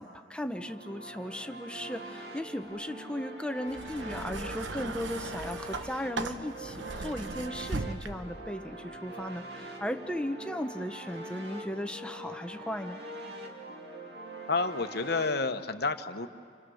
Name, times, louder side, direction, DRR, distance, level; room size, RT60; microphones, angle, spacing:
voice 1, 0.0-13.0, equal, 5° left, 6 dB, 0.8 m, -36 dB
sound 1, 0.5-15.3, right 1 dB, 60° right, 2.2 m, -44 dB
sound 2, 3.7-8.5 9.4-9.6, right 3 dB, 85° right, 1.0 m, -38 dB
voice 2, 14.5-16.3, left 3 dB, 60° left, 8 dB, 1.1 m, -30 dB
30.0 x 27.5 x 6.4 m, 2.2 s
head